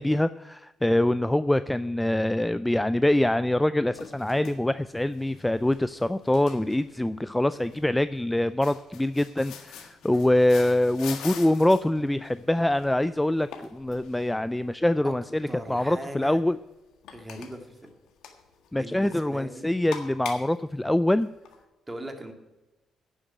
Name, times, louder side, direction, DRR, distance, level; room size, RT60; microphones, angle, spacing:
voice 1, 0.0-16.6 18.7-21.3, left 1 dB, 10° left, 14 dB, 0.3 m, -24 dB
sound 1, 3.9-21.6, left 7 dB, 85° left, 1.6 m, -46 dB
voice 2, 15.5-16.4 17.1-17.9 18.7-19.7 21.9-22.3, right 1 dB, 15° right, 4 dB, 2.1 m, -40 dB
10.5 x 7.1 x 9.2 m, 1.1 s
cardioid pair, 90°, 0 cm